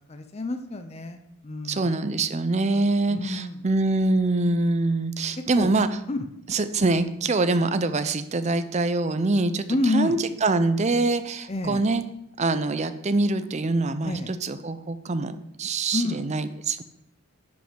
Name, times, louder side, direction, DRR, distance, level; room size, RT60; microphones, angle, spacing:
voice 1, 0.1-1.9 3.1-3.6 5.6-5.7 6.1-6.3 9.7-10.2 11.5-11.8 14.0-14.3 15.9-16.2, left 2 dB, 30° left, 7 dB, 0.5 m, -28 dB
voice 2, 1.6-5.9 6.5-12.0 12.4-16.8, right 2 dB, 30° right, 11 dB, 0.5 m, -24 dB
10.5 x 5.2 x 5.1 m, 0.79 s
head